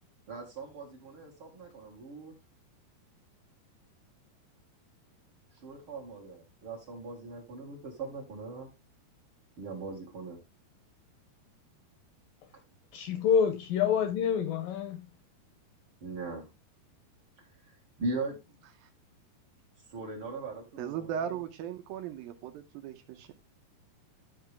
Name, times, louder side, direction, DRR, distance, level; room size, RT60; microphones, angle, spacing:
voice 1, 0.3-2.3 5.6-8.7 9.6-10.4 16.0-16.5 17.4-18.6 19.9-21.1, right 3 dB, 45° right, 1.9 m, -40 dB
voice 2, 12.9-15.0, left 7 dB, 75° left, 2.1 m, -27 dB
voice 3, 20.8-23.3, right 9 dB, 75° right, 2.4 m, -37 dB
12.0 x 5.7 x 3.4 m
omnidirectional pair, 4.7 m